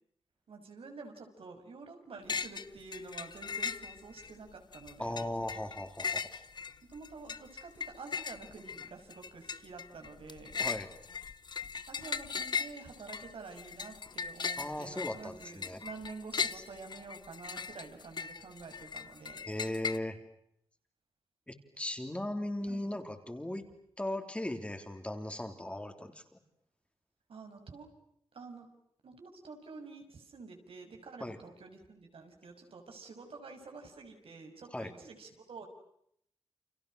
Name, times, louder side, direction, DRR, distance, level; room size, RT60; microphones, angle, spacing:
voice 1, 0.5-5.3 6.9-10.6 11.9-19.5 22.7-22.9 27.3-27.9 28.3-28.7 29.0-35.7, right 4 dB, 80° right, 4 dB, 6.3 m, -49 dB
sound 1, 2.3-2.7 2.9-4.3 4.7-20.0, left 6 dB, 50° left, 1.0 m, -38 dB
voice 2, 5.0-6.3 10.6-10.9 14.6-15.8 16.5-16.6 19.5-20.2 21.5-23.6 24.0-26.4 31.2-31.4 34.7-34.9, left 1 dB, 10° left, 5 dB, 3.5 m, -38 dB
30.0 x 28.5 x 6.3 m, 0.71 s
wide cardioid pair, 125°, 9 cm